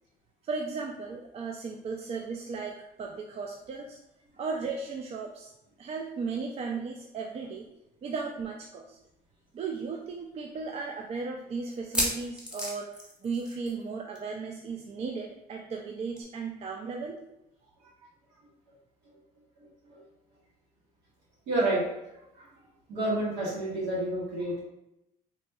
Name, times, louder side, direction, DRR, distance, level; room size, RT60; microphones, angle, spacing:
voice 1, 0.5-4.0 4.4-5.5 5.8-7.7 8.0-9.0 9.5-12.9 13.2-17.2, right 4 dB, 40° right, 1 dB, 0.3 m, -36 dB
sound 1, 9.1-9.2 9.5-9.6 10.2-10.3 11.7-13.9 14.1-14.4 14.6-14.7 16.2-16.3, left 1 dB, 5° right, 0.8 m, -33 dB
voice 2, 21.5-21.8 22.1-22.5 22.9-24.6, right 1 dB, 90° right, -6 dB, 1.5 m, -29 dB
4.1 x 2.7 x 2.2 m, 0.88 s
cardioid pair, 110°, 17 cm